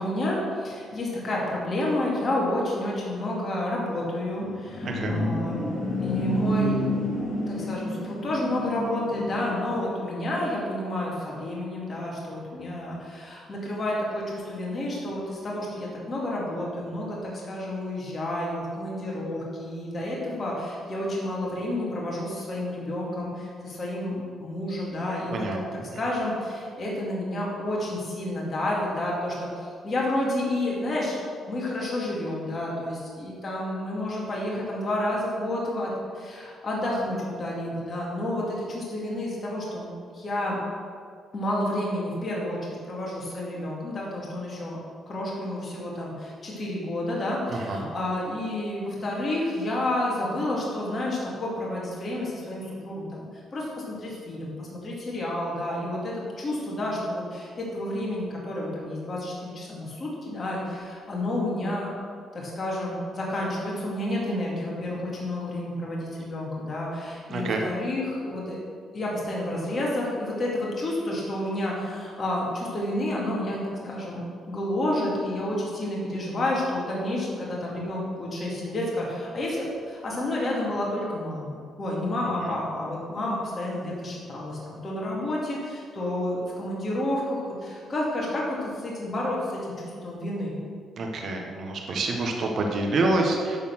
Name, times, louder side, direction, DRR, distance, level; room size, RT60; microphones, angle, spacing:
voice 1, 0.0-5.7 6.0-6.8 7.5-25.5 26.0-31.1 31.5-39.9 40.1-40.6 41.3-42.6 42.8-44.8 45.1-61.9 62.3-68.6 68.9-74.2 74.5-90.6, left 1 dB, 40° left, -4 dB, 2.6 m, -30 dB
sound 1, 4.3-9.9, equal, 55° left, 2.5 m, -29 dB
voice 2, 4.8-5.2 25.3-26.0 47.5-47.9 67.3-67.7 82.4-82.6 91.0-93.6, right 2 dB, 60° right, 2 dB, 1.5 m, -27 dB
11.0 x 4.4 x 6.2 m, 2.1 s
cardioid pair, 90°, 0 cm